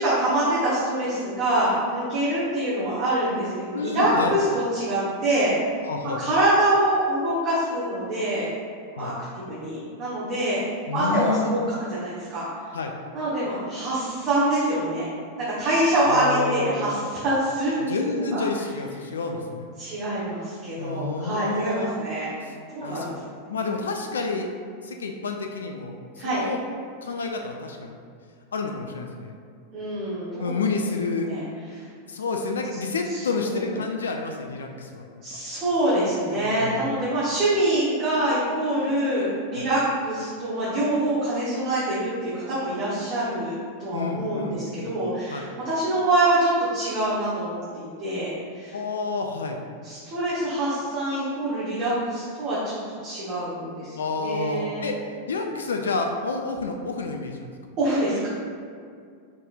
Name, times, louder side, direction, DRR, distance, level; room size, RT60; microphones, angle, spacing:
voice 1, 0.0-5.5 6.2-8.5 8.9-10.6 10.9-12.5 13.1-15.1 15.4-18.4 19.8-23.2 26.2-26.4 29.7-30.6 31.2-31.4 31.7-31.8 33.1-33.7 35.2-48.7 49.8-54.8 57.8-58.3, right 1 dB, 40° right, -9 dB, 1.1 m, -25 dB
voice 2, 3.7-4.4 5.8-6.2 8.9-9.1 10.9-11.5 12.7-12.9 16.1-16.9 17.8-19.7 20.8-21.9 22.4-22.5 22.8-23.1 23.5-24.5 24.8-26.6 27.0-28.0 28.5-29.4 30.4-31.3 32.1-35.4 36.4-36.9 39.5-39.7 43.9-44.9 45.3-45.4 48.7-49.6 53.9-55.0 55.3-57.5, left 4 dB, 65° left, 3 dB, 0.3 m, -29 dB
5.3 x 3.6 x 2.5 m, 2.2 s
figure-of-eight pair, 90°, 0 cm